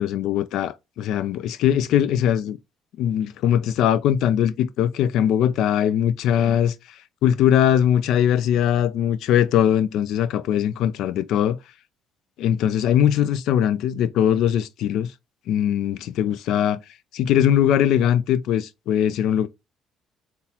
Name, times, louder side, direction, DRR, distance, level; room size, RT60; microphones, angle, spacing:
voice 1, 0.0-2.6 3.0-6.7 7.2-11.6 12.4-15.1 15.5-16.8 17.1-19.5, left 10 dB, 75° left, 0.4 m, -21 dB
3.9 x 2.3 x 2.7 m
supercardioid pair, 70°, 0 cm